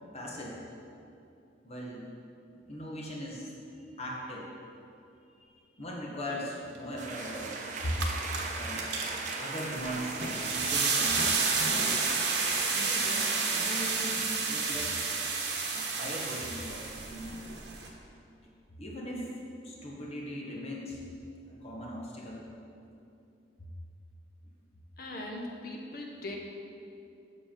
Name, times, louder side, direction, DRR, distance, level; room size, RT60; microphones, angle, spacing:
voice 1, 0.1-0.6 1.6-2.1 2.7-3.5 4.0-4.5 5.4-5.5 5.8-8.0 8.5-8.9 9.4-11.9 12.7-15.1 15.7-17.6 18.8-19.3 19.6-21.0 21.5-22.4 23.6-23.7, equal, 35° left, -3 dB, 1.2 m, -39 dB
sound 1, 7.0-13.9, right 3 dB, 45° right, 0.8 m, -38 dB
sound 2, 7.4-7.5 7.8-17.9, right 4 dB, 70° right, 1.2 m, -31 dB
voice 2, 25.0-26.4, left 1 dB, 60° left, 0 dB, 1.2 m, -40 dB
7.7 x 7.0 x 5.2 m, 2.6 s
head